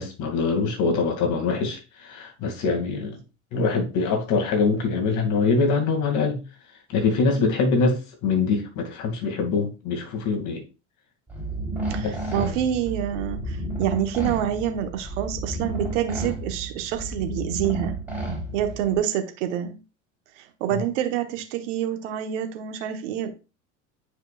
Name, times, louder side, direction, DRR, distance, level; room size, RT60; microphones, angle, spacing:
voice 1, 0.0-3.2 3.5-6.4 6.9-10.6 12.0-12.5 20.7-20.8, left 4 dB, 50° left, 2.6 m, -24 dB
sound 1, 11.3-19.0, right 1 dB, 5° right, 3.8 m, -32 dB
voice 2, 11.9-17.9 18.5-19.8 20.4-23.3, right 10 dB, 65° right, 1.3 m, -27 dB
9.3 x 5.3 x 2.5 m
hypercardioid pair, 80°, 39 cm